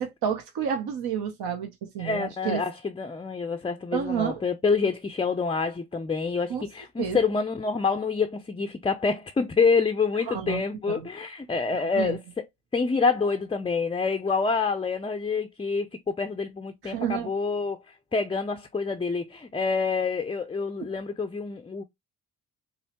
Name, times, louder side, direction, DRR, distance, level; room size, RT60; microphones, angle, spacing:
voice 1, 0.0-2.6 3.9-4.4 6.5-6.6 7.0-7.2 10.3-11.1 11.7-12.2 16.8-17.3, right 8 dB, 60° right, 1.0 m, -30 dB
voice 2, 2.0-12.2 12.7-17.8 18.1-21.8, left 4 dB, 15° left, 0.5 m, -27 dB
5.4 x 2.1 x 2.9 m
supercardioid pair, 60°, 43 cm